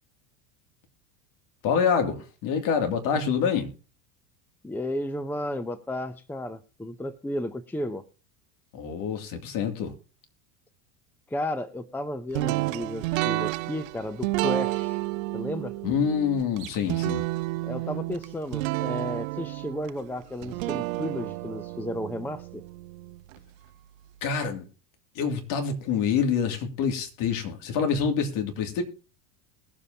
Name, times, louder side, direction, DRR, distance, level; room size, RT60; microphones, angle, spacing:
voice 1, 1.6-3.7 8.7-9.9 15.8-17.3 24.2-24.6 25.1-28.8, left 6 dB, 55° left, 2.7 m, -26 dB
voice 2, 4.6-8.0 11.3-15.0 15.3-15.7 17.6-22.6, left 1 dB, 5° left, 0.6 m, -33 dB
sound 1, 12.3-23.4, right 20 dB, 75° right, 0.7 m, -31 dB
20.5 x 7.4 x 2.8 m
supercardioid pair, 125°, 40 cm